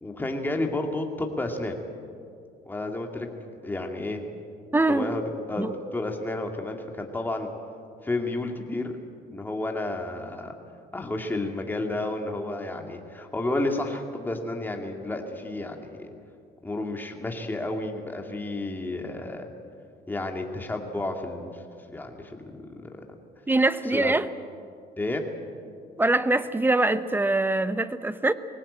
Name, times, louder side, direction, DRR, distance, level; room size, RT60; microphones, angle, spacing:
voice 1, 0.0-1.8 2.7-3.3 3.6-4.2 4.9-5.2 5.5-7.5 8.0-8.9 9.3-10.5 10.9-16.1 16.6-19.5 20.1-21.6 21.9-23.0 23.9-24.1 25.0-25.2, left 2 dB, 10° left, 2 dB, 2.3 m, -31 dB
voice 2, 4.7-5.1 5.6-5.7 23.5-24.3 26.0-28.3, right 2 dB, 10° right, 13 dB, 0.8 m, -23 dB
20.5 x 17.5 x 8.6 m, 2.4 s
cardioid pair, 110°, 17 cm